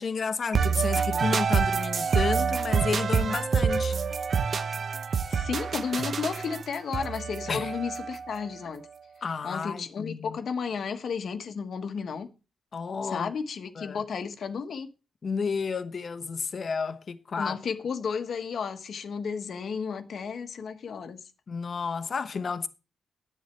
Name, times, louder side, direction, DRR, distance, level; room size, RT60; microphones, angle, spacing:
voice 1, 0.0-4.0 7.5-7.7 9.2-10.4 12.7-13.3 13.7-14.0 15.2-17.6 21.5-22.7, left 5 dB, 40° left, 1.0 m, -31 dB
sound 1, 0.5-8.4, right 6 dB, 45° right, 0.7 m, -27 dB
voice 2, 5.3-8.8 9.4-12.3 13.0-14.9 17.4-21.2, left 6 dB, 60° left, 1.3 m, -33 dB
10.5 x 9.0 x 4.5 m
wide cardioid pair, 135°, 0 cm